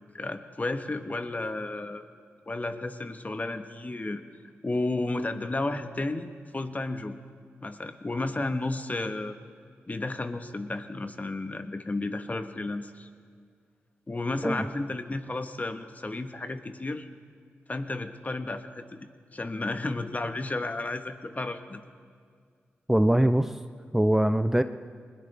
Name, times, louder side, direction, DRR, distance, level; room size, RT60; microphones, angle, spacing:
voice 1, 0.1-2.0 2.5-4.2 4.6-6.3 6.5-7.1 7.6-9.4 9.9-13.1 14.1-17.1 17.7-21.8, left 2 dB, 35° left, 8 dB, 1.2 m, -32 dB
voice 2, 22.9-23.6 23.9-24.6, right 1 dB, 10° right, 10 dB, 0.6 m, -22 dB
20.5 x 20.0 x 3.4 m, 2.1 s
supercardioid pair, 40°, 5 cm